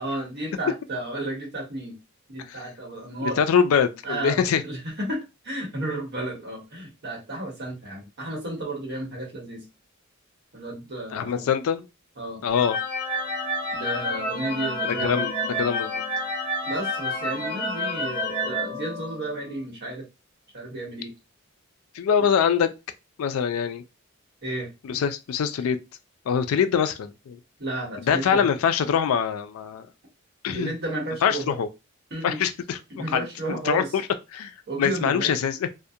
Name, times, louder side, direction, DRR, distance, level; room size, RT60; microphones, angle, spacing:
voice 1, 0.0-2.0 2.3-3.4 4.0-9.6 10.5-11.5 12.2-12.4 13.7-15.3 16.7-20.1 20.5-21.1 24.4-25.0 27.6-28.5 30.5-31.6 32.1-32.4 32.9-34.0 34.7-35.3, right 1 dB, 55° right, 1.0 m, -33 dB
voice 2, 3.2-4.6 11.1-11.8 12.4-12.8 14.8-15.3 15.6-16.0 21.9-22.7 23.2-23.8 24.8-25.8 26.3-27.4 28.0-29.9 30.4-30.7 31.2-31.7 32.2-34.0 34.3-35.7, left 7 dB, 80° left, 0.3 m, -24 dB
sound 1, 12.5-19.5, left 1 dB, 50° left, 0.8 m, -29 dB
2.4 x 2.1 x 2.7 m
head